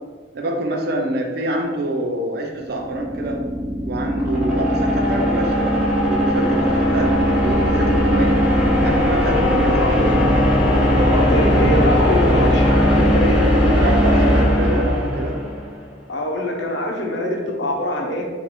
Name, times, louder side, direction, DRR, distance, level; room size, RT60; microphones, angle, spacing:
voice 1, 0.3-3.4 3.8-8.4 8.8-10.0 13.8-15.4, right 1 dB, 60° right, 2 dB, 0.5 m, -26 dB
sound 1, 2.6-15.7, equal, 5° right, 0.9 m, -18 dB
voice 2, 9.6-10.2 11.0-13.4 16.1-18.3, equal, 90° left, 0 dB, 0.9 m, -23 dB
4.3 x 2.6 x 4.2 m, 1.5 s
head